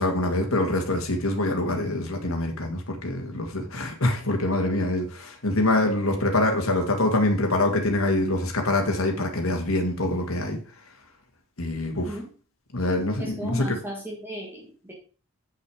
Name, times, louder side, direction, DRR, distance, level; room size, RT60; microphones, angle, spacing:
voice 1, 0.0-10.6 11.6-12.2 12.7-13.8, left 2 dB, 80° left, 3 dB, 2.0 m, -25 dB
voice 2, 12.0-12.3 13.2-14.9, equal, 10° right, -2 dB, 1.7 m, -35 dB
8.0 x 5.9 x 4.9 m, 0.37 s
head